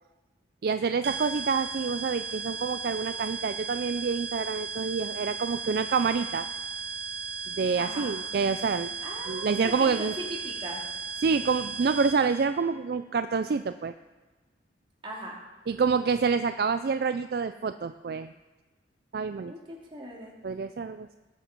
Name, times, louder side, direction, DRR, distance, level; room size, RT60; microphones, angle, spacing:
voice 1, 0.6-6.5 7.5-8.9 9.3-10.1 11.2-13.9 15.7-18.3 19.1-19.5 20.4-21.1, right 5 dB, 55° right, 10 dB, 0.4 m, -27 dB
sound 1, 1.0-12.4, right 5 dB, 70° right, 1.5 m, -36 dB
voice 2, 7.8-8.1 9.0-10.8 15.0-15.4 19.4-20.3, right 1 dB, 30° right, -3 dB, 3.0 m, -39 dB
19.0 x 7.5 x 5.3 m, 1.2 s
head